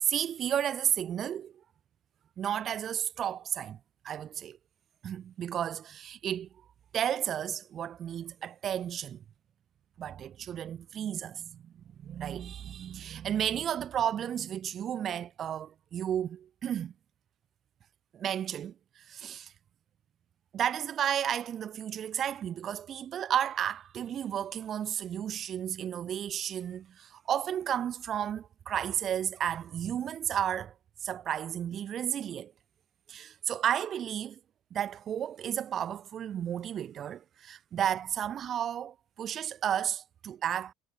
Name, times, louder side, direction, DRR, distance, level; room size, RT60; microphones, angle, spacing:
voice 1, 0.0-1.5 2.4-3.8 4.0-4.6 5.0-6.5 6.9-9.2 10.0-11.7 12.0-16.9 18.1-18.7 19.1-19.5 20.5-30.7 31.0-32.5 33.1-34.4 34.7-40.7, right 9 dB, 50° right, 2.0 m, -33 dB
supercardioid pair, 90°, 0 cm